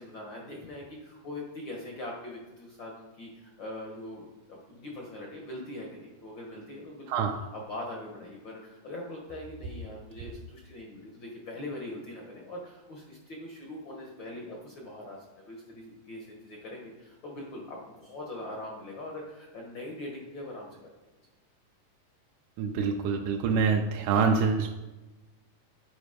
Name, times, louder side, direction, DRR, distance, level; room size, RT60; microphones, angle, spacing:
voice 1, 0.0-7.2 7.5-20.8, left 1 dB, 75° left, -1 dB, 1.0 m, -42 dB
voice 2, 22.6-24.7, right 5 dB, 80° right, 2 dB, 2.0 m, -25 dB
9.7 x 4.1 x 5.0 m, 1.1 s
omnidirectional pair, 3.7 m